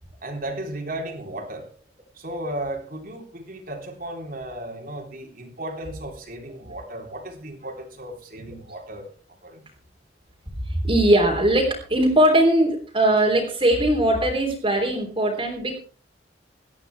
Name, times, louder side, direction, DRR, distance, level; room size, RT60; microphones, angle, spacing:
voice 1, 0.2-1.7 2.1-9.1 9.4-9.6, right 1 dB, 50° right, 2 dB, 3.7 m, -35 dB
voice 2, 10.7-15.8, right 1 dB, 30° right, -2 dB, 3.7 m, -20 dB
19.0 x 13.5 x 3.5 m, 0.40 s
head